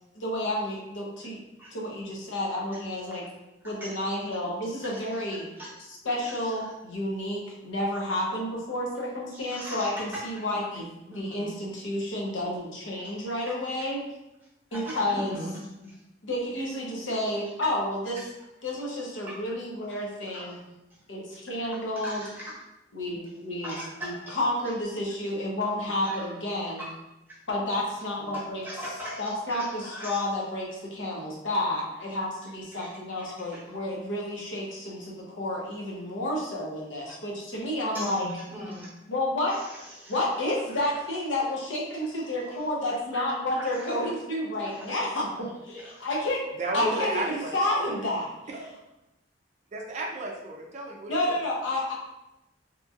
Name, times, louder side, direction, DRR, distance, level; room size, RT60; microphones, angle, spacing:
voice 1, 0.2-1.4 1.7-3.2 3.6-5.4 6.0-14.0 14.7-15.4 16.2-18.2 18.6-20.6 21.1-22.2 22.9-23.7 24.0-26.8 27.5-28.6 29.2-38.3 39.1-39.6 40.1-46.4 46.7-48.3 51.1-51.9, left 1 dB, 85° left, -2 dB, 0.7 m, -30 dB
voice 2, 6.2-6.7 9.3-10.5 11.1-11.5 13.0-13.3 14.7-15.6 18.2-18.3 19.2-19.4 20.3-20.5 20.9-21.0 21.3-21.4 22.0-22.6 23.6-24.4 25.2-25.3 25.9-26.3 26.6-26.9 27.3-27.4 28.3-30.2 32.1-32.2 32.7-32.9 33.2-33.8 37.1-37.2 37.9-38.2 38.5-38.9 39.5-40.2 40.7-41.0 42.2-42.6 42.8-44.2 44.6-45.0 45.6-46.1 46.7-47.3, equal, 10° right, -7 dB, 0.9 m, -41 dB
voice 3, 46.6-48.0 48.5-48.7 49.7-51.3, right 2 dB, 40° right, 0 dB, 0.4 m, -34 dB
2.8 x 2.7 x 2.3 m, 0.93 s
head